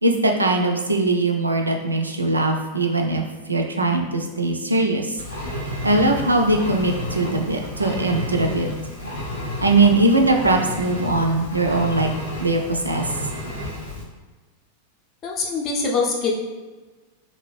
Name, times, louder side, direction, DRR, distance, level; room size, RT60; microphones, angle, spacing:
voice 1, 0.0-5.2 5.8-8.7 9.6-12.1 12.4-13.0, right 2 dB, 80° right, 3 dB, 0.3 m, -20 dB
Engine, 5.2-14.0, left 1 dB, 80° left, 0.7 m, -31 dB
voice 2, 15.2-16.3, left 4 dB, 30° left, -1 dB, 0.6 m, -23 dB
2.8 x 2.4 x 3.1 m, 1.3 s
figure-of-eight pair, 90°, 0 cm